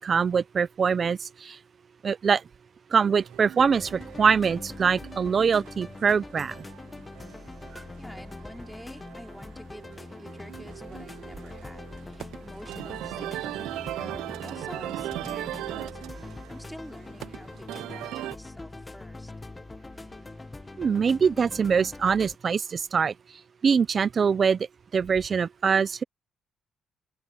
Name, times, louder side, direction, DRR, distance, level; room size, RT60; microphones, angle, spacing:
voice 1, 0.0-1.6 2.0-2.4 2.9-6.5 20.8-23.1 23.6-24.6 24.9-26.0, right 6 dB, 45° right, 0.7 m, -23 dB
sound 1, 3.2-18.4, right 14 dB, 90° right, 0.8 m, -39 dB
sound 2, 3.6-22.4, left 2 dB, 20° left, 1.6 m, -43 dB
voice 2, 8.0-19.3, equal, ahead, 5.4 m, -48 dB
open air
cardioid pair, 90°, 0 cm